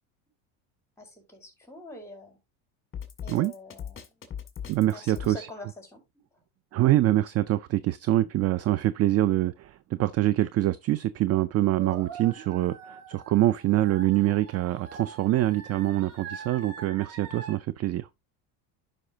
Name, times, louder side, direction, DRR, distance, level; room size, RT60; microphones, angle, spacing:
voice 1, 1.0-2.4 3.2-4.3 4.9-6.0 6.3-6.4, left 2 dB, 5° left, 4.8 m, -45 dB
Drum kit, 2.9-5.3, left 8 dB, 30° left, 2.2 m, -38 dB
voice 2, 4.7-5.5 6.7-18.1, right 15 dB, 35° right, 0.4 m, -25 dB
sound 1, 11.8-17.5, right 5 dB, 75° right, 3.5 m, -43 dB
11.5 x 5.4 x 2.8 m
supercardioid pair, 100°, 43 cm